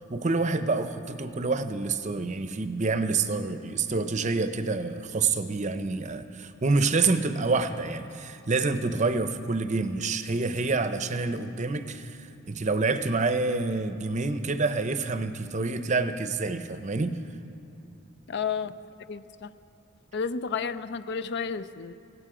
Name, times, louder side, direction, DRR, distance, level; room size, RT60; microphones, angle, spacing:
voice 1, 0.1-17.2, right 3 dB, 35° right, 10 dB, 0.6 m, -27 dB
voice 2, 18.3-18.8 19.1-19.5 20.1-21.9, left 6 dB, 50° left, 14 dB, 0.4 m, -31 dB
17.5 x 16.5 x 4.9 m, 2.7 s
head